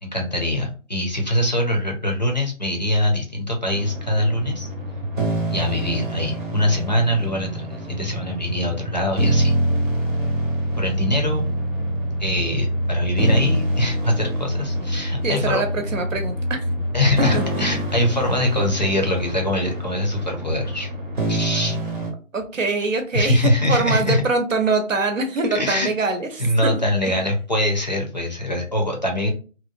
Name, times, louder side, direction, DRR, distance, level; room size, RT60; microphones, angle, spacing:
voice 1, 0.0-4.7 5.5-9.5 10.8-11.5 12.2-15.6 16.9-20.9 21.3-21.8 23.1-24.2 25.5-25.9 26.4-29.3, left 1 dB, 35° left, 1 dB, 0.5 m, -23 dB
sound 1, 3.7-22.1, right 1 dB, 40° right, 0.8 m, -25 dB
voice 2, 15.2-16.6 17.3-17.6 22.3-26.7 27.0-27.2, right 3 dB, 75° right, 6 dB, 0.8 m, -24 dB
2.8 x 2.0 x 2.5 m, 0.36 s
figure-of-eight pair, 155°, 40 cm